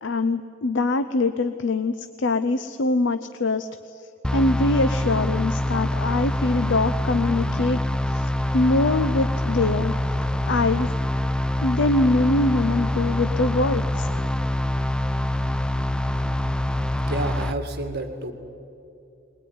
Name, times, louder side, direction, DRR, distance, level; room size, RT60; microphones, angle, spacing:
voice 1, 0.0-1.9 2.2-3.7 4.3-7.8 8.1-8.3 8.5-9.9 10.5-10.9 11.6-14.1, left 2 dB, 65° left, 11 dB, 0.7 m, -23 dB
sound 1, 4.2-17.5, left 1 dB, 5° left, 0.4 m, -25 dB
voice 2, 17.0-18.3, right 2 dB, 55° right, 7 dB, 1.9 m, -30 dB
21.0 x 20.5 x 9.5 m, 2.7 s
head